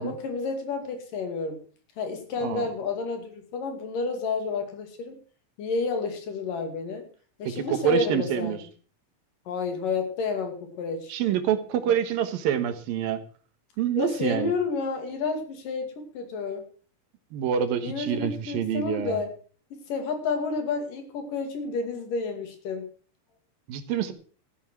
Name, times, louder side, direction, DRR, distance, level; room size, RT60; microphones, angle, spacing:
voice 1, 0.0-1.6 2.0-5.2 5.6-7.0 7.4-8.6 9.5-11.1 11.9-12.0 14.0-16.6 17.8-19.3 19.9-22.9, left 4 dB, 70° left, 5 dB, 4.1 m, -30 dB
voice 2, 7.6-8.6 11.1-13.2 13.8-14.5 17.3-19.2 23.7-24.1, right 9 dB, 85° right, 10 dB, 3.1 m, -27 dB
14.0 x 9.3 x 6.3 m, 0.41 s
omnidirectional pair, 4.0 m